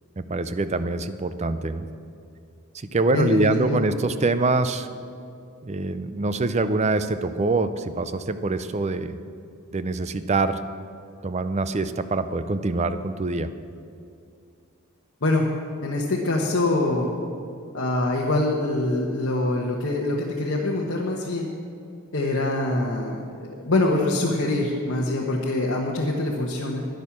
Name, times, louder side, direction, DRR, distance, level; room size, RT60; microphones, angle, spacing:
voice 1, 0.2-1.9 2.7-4.9 5.6-9.2 9.7-10.6 11.2-13.5, right 3 dB, 30° right, 11 dB, 0.5 m, -24 dB
voice 2, 3.1-3.8 15.2-15.4 15.8-17.1 17.7-21.5 22.1-26.9, left 2 dB, 60° left, -2 dB, 1.1 m, -24 dB
10.5 x 10.5 x 7.2 m, 2.5 s
head